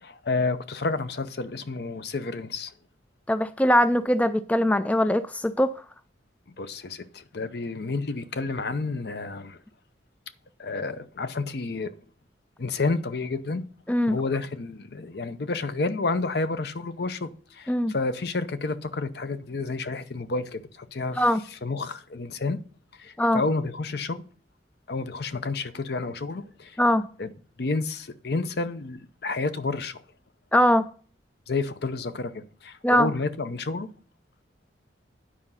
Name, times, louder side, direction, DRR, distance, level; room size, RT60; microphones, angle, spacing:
voice 1, 0.0-2.7 6.6-9.6 10.6-11.9 12.6-13.6 14.1-21.2 21.5-22.6 23.0-24.2 24.9-26.8 27.2-27.3 27.6-30.0 31.5-33.9, left 3 dB, 60° left, 0.7 m, -30 dB
voice 2, 3.3-5.7 13.9-14.2 17.7-18.0 21.2-21.4 23.2-23.4 26.8-27.1 30.5-30.8 32.8-33.1, equal, 10° left, 0.3 m, -21 dB
10.0 x 4.9 x 5.6 m
head